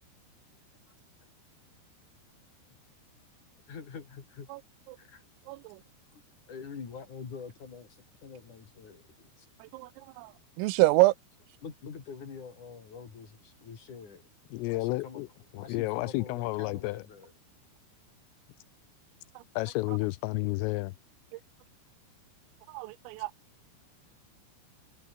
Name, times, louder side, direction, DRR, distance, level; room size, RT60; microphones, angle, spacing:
voice 1, 3.7-4.5 5.0-5.2 6.1-6.2 6.5-9.5 11.6-14.2 14.7-15.3 15.5-17.3, left 6 dB, 40° left, 4.7 m, -45 dB
voice 2, 5.5-5.8 9.7-9.9 10.2-10.3 10.6-11.1 22.7-23.3, right 20 dB, 85° right, 3.5 m, -25 dB
voice 3, 14.5-15.3 15.5-17.0 19.6-20.9, left 21 dB, 90° left, 3.3 m, -31 dB
omnidirectional pair, 5.8 m